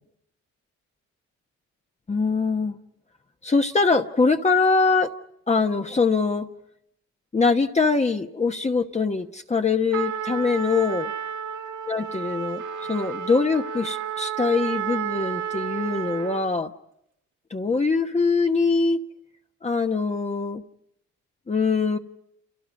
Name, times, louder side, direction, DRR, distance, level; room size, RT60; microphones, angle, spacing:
voice 1, 2.1-2.8 3.4-5.1 5.5-6.5 7.3-11.1 11.9-12.6 12.9-16.7 17.5-19.0 19.6-20.6 21.5-22.0, left 4 dB, 20° left, 4 dB, 1.1 m, -23 dB
Trumpet, 9.9-16.5, right 8 dB, 75° right, 2.0 m, -31 dB
29.5 x 28.0 x 5.3 m, 0.76 s
cardioid pair, 90°, 30 cm